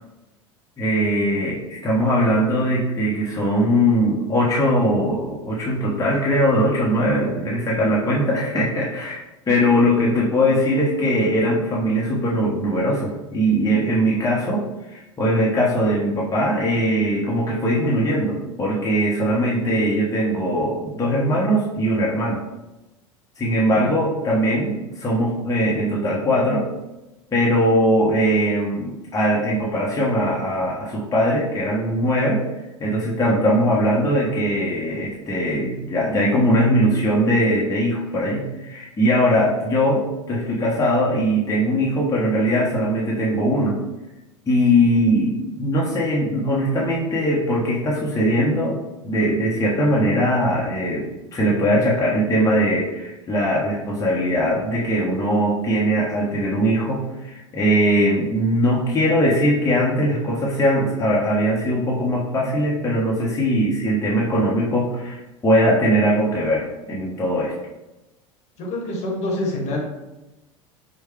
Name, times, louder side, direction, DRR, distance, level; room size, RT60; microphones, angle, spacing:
voice 1, 0.8-22.4 23.4-26.7 27.3-32.4 32.8-43.8 44.5-48.8 49.0-67.5, equal, 20° left, -5 dB, 0.8 m, -20 dB
voice 2, 68.6-69.8, left 1 dB, 45° left, 0 dB, 1.1 m, -26 dB
4.5 x 2.2 x 3.1 m, 1.0 s
figure-of-eight pair, 75°, 16 cm